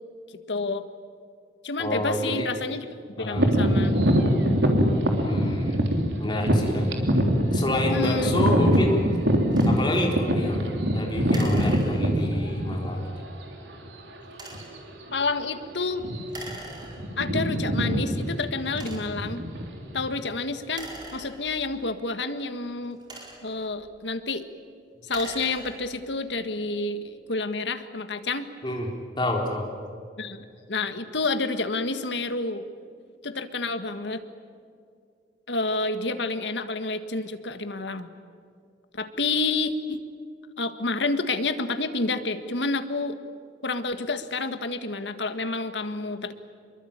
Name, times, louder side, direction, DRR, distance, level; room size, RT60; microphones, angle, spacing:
voice 1, 0.5-0.9 1.6-2.9 3.2-4.0 7.9-8.4 15.1-16.1 17.2-19.4 19.9-23.0 23.4-24.4 25.0-27.0 27.3-28.5 30.2-32.6 33.2-34.2 35.5-38.1 38.9-40.0 40.6-43.2 43.6-46.3, left 3 dB, 85° left, 9 dB, 1.7 m, -29 dB
voice 2, 1.8-2.5 3.2-3.4 5.2-5.8 6.2-6.9 7.5-9.0 9.7-13.1 28.6-28.9 29.2-29.7, left 1 dB, 25° left, 0 dB, 4.2 m, -28 dB
sound 1, 3.3-13.1 13.8-13.9 14.5-14.8 15.0-15.3 15.9-16.5 16.7-20.2, equal, 85° right, 3.5 m, -23 dB
sound 2, 9.5-9.8 11.3-12.3 14.3-14.8 16.3-17.3 18.0-18.1 18.7-19.3 20.7-21.8 22.8-23.7 24.9-26.0, right 1 dB, 25° right, 4.6 m, -42 dB
26.5 x 23.0 x 8.9 m, 2.3 s
head